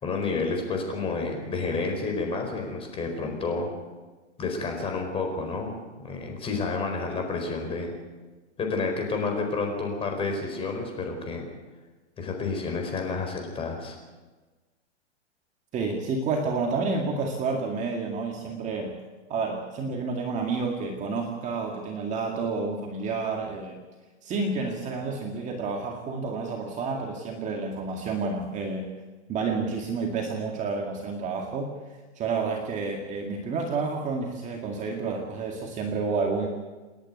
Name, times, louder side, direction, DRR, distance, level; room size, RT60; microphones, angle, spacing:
voice 1, 0.0-3.7 4.4-5.8 6.0-7.9 8.6-11.5 12.2-14.0, left 4 dB, 15° left, 3 dB, 4.5 m, -30 dB
voice 2, 15.7-18.9 19.3-23.8 24.2-28.9 29.3-31.8 32.2-36.5, right 4 dB, 20° right, 1 dB, 2.1 m, -30 dB
29.0 x 10.5 x 9.5 m, 1.3 s
hypercardioid pair, 155°, 35 cm